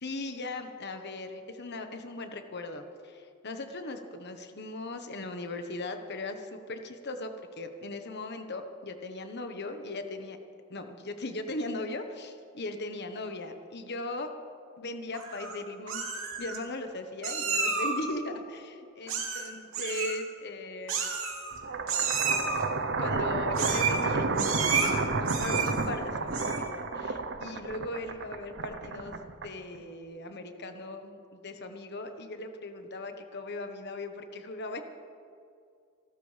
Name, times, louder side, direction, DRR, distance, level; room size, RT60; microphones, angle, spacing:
voice 1, 0.0-10.4 10.7-14.3 14.8-21.1 23.0-29.1 29.4-34.8, left 2 dB, 55° left, 6 dB, 1.3 m, -38 dB
Meow, 15.1-15.5 15.9-16.6 17.2-18.0 19.1-19.5 19.7-20.2 20.9-21.6 21.9-22.6 23.5-24.0 24.4-24.9 25.3-25.9 26.3-26.7, right 5 dB, 85° right, 2.9 m, -31 dB
sound 1, 21.6-29.8, right 3 dB, 60° right, 0.9 m, -31 dB
28.0 x 13.0 x 3.5 m, 2.4 s
head